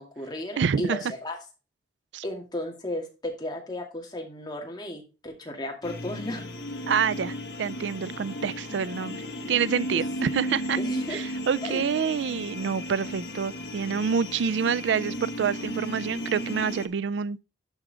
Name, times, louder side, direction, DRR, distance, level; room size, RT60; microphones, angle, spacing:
voice 1, 0.0-1.4 2.2-6.5 9.9-10.0 10.8-11.2 11.6-11.9, left 1 dB, 25° left, 2.3 m, -34 dB
voice 2, 0.6-1.0 2.1-2.2 6.9-10.8 11.1-17.4, right 6 dB, 90° right, 0.4 m, -27 dB
sound 1, 5.8-16.9, equal, 65° left, 1.4 m, -35 dB
11.5 x 5.0 x 3.5 m
head